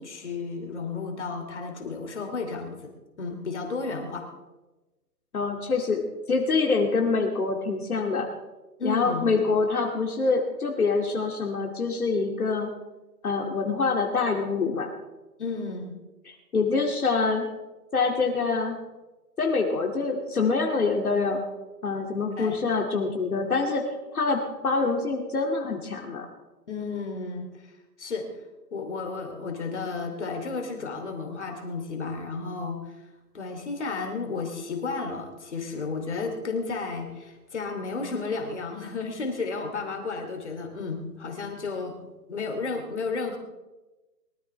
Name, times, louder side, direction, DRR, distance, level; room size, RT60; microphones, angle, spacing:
voice 1, 0.0-2.9 3.2-4.3 8.8-9.3 15.4-15.9 22.4-22.6 26.7-27.5 28.0-28.3 28.7-32.9 33.3-42.0 42.3-43.4, left 4 dB, 45° left, 4 dB, 2.8 m, -32 dB
voice 2, 5.3-6.0 6.3-8.3 8.8-12.7 13.2-14.9 16.3-17.5 17.9-18.8 19.4-21.4 21.8-23.8 24.1-26.3, left 4 dB, 60° left, 1 dB, 2.5 m, -25 dB
23.5 x 14.0 x 3.4 m, 1.1 s
hypercardioid pair, 180°, 50 cm